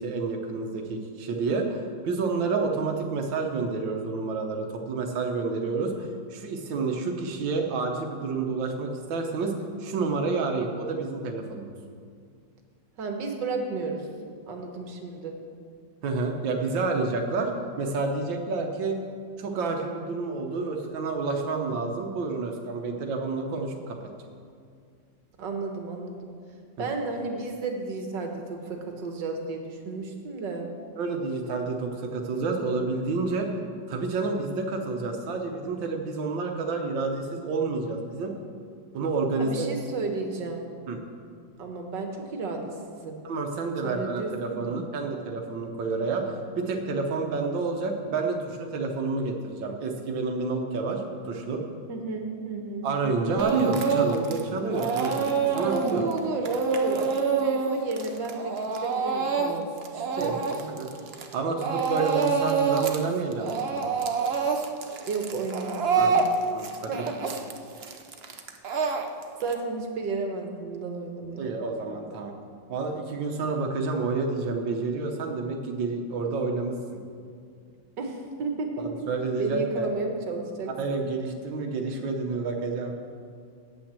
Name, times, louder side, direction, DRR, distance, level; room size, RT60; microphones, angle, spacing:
voice 1, 0.0-9.5 9.8-11.7 16.0-17.5 17.8-19.0 19.4-24.0 26.8-26.9 31.0-33.5 33.9-38.3 38.9-39.7 40.9-41.0 43.2-51.6 52.8-56.0 60.2-60.3 60.8-60.9 61.3-63.8 66.0-66.2 66.5-66.9 71.4-72.3 72.7-77.0 78.8-79.9 80.8-82.9, right 4 dB, 90° right, 3 dB, 1.7 m, -29 dB
voice 2, 13.0-14.1 14.5-15.4 25.4-26.3 26.8-30.7 39.4-40.7 41.6-43.2 43.8-44.8 51.9-52.9 55.6-60.8 65.1-66.3 66.9-67.3 68.6-68.8 69.4-71.5 78.0-78.9 79.4-81.0, right 3 dB, 70° right, 3 dB, 1.9 m, -32 dB
Speech / Crying sobbing, 53.4-54.4 54.7-61.3 61.6-63.0 63.3-69.5, right 5 dB, 50° right, 0.7 m, -27 dB
8.7 x 8.3 x 7.4 m, 2.2 s
omnidirectional pair, 2.0 m